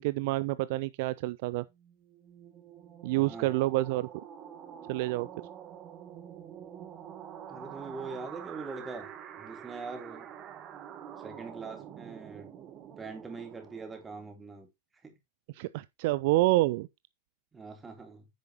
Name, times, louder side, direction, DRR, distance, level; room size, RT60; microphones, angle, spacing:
voice 1, 0.0-1.6 3.0-4.2 4.9-5.3 15.5-16.9, right 18 dB, 50° right, 0.5 m, -28 dB
sound 1, 1.8-14.4, right 9 dB, 30° right, 1.5 m, -47 dB
voice 2, 3.1-3.7 7.5-9.1 9.4-10.3 11.2-12.5 13.0-14.7 15.0-15.2 17.5-18.3, right 4 dB, 15° right, 3.3 m, -42 dB
10.0 x 8.3 x 3.0 m
figure-of-eight pair, 90°, 0 cm